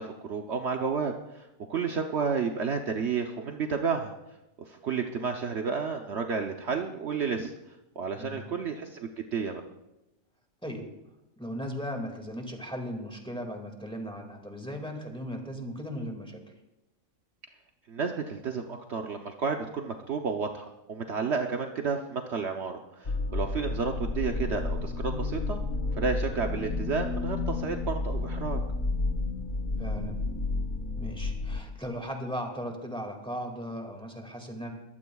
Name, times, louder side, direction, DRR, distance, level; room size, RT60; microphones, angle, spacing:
voice 1, 0.0-4.1 4.6-7.5 8.0-9.6 17.9-25.6 25.9-28.6, right 5 dB, 60° right, 3 dB, 1.0 m, -31 dB
voice 2, 11.4-16.4 29.8-30.3 31.0-34.7, equal, 5° left, 3 dB, 2.0 m, -37 dB
sound 1, 23.0-31.6, left 3 dB, 40° left, 1.2 m, -31 dB
22.0 x 15.0 x 2.3 m, 0.93 s
omnidirectional pair, 1.4 m